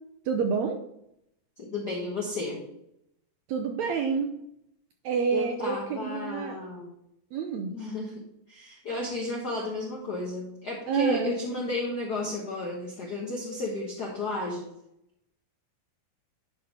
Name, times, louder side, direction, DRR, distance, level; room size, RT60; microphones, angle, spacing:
voice 1, 0.3-0.8 3.5-4.3 5.0-6.6 7.3-7.7 10.9-11.3, right 6 dB, 75° right, 3 dB, 1.6 m, -28 dB
voice 2, 1.6-2.6 5.3-6.9 7.7-14.7, left 2 dB, 65° left, -2 dB, 1.0 m, -33 dB
11.0 x 3.7 x 5.5 m, 0.79 s
omnidirectional pair, 3.8 m